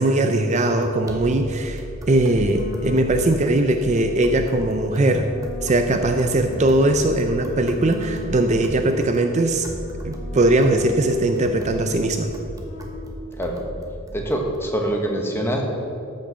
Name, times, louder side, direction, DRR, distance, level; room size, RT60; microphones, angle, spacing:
voice 1, 0.0-5.3 5.6-9.7 10.0-12.3, right 2 dB, 35° right, 6 dB, 0.5 m, -20 dB
sound 1, 0.6-14.6, equal, 15° right, 1.1 m, -36 dB
sound 2, 2.5-3.6 4.4-8.9 9.6-13.0, left 4 dB, 75° left, 1.4 m, -40 dB
voice 2, 14.1-15.6, right 1 dB, 10° left, 1 dB, 1.3 m, -24 dB
13.5 x 6.6 x 6.3 m, 2.9 s
head